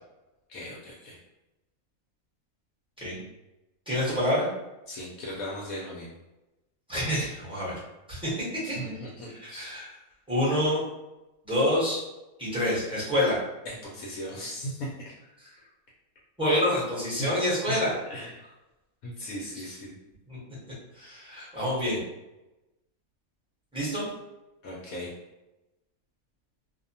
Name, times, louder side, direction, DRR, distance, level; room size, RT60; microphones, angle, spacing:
voice 1, 0.5-1.2 4.9-6.1 8.8-9.8 13.7-15.1 17.2-17.3 17.7-17.8 18.1-18.3 19.0-19.9 24.6-25.1, equal, 75° left, -5 dB, 1.0 m, -37 dB
voice 2, 3.9-4.5 6.9-7.7 8.1-8.3 8.7-8.9 9.4-9.9 10.3-10.8 11.4-12.0 12.4-13.4 16.4-17.9 20.3-20.4 20.9-22.0 23.7-24.1, left 1 dB, 5° right, -8 dB, 0.8 m, -27 dB
2.6 x 2.1 x 2.7 m, 1.0 s
omnidirectional pair, 1.5 m